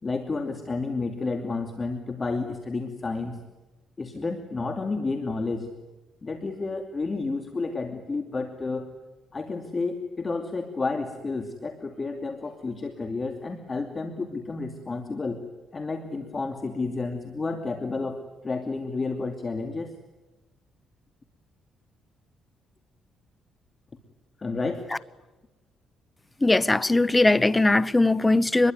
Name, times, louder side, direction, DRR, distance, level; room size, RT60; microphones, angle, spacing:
voice 1, 0.0-3.4 4.0-5.7 6.2-8.9 9.3-15.4 15.7-19.9 24.4-25.0, left 3 dB, 30° left, 2.6 m, -31 dB
voice 2, 26.4-28.7, left 2 dB, 15° left, 0.9 m, -20 dB
27.0 x 21.5 x 9.5 m
cardioid pair, 90°, 0 cm